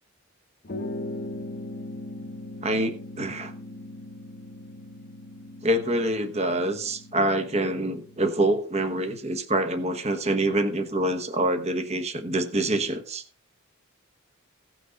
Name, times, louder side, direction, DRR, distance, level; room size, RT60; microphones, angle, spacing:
sound 1, 0.6-8.4, left 1 dB, 45° left, 1.0 m, -39 dB
voice 1, 2.6-3.5 5.6-13.2, right 1 dB, 30° right, 8 dB, 1.1 m, -26 dB
16.5 x 6.2 x 3.9 m, 0.42 s
head